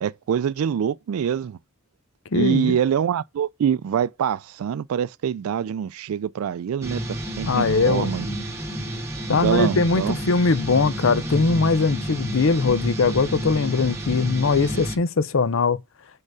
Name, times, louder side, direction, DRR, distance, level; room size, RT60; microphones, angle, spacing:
voice 1, 0.0-1.6 2.3-8.3 9.3-10.2, right 8 dB, 75° right, 0.3 m, -25 dB
voice 2, 2.3-2.8 7.5-8.1 9.3-15.8, left 4 dB, 65° left, 0.6 m, -21 dB
sound 1, 6.8-15.0, equal, 15° right, 1.5 m, -30 dB
6.5 x 4.9 x 4.8 m
head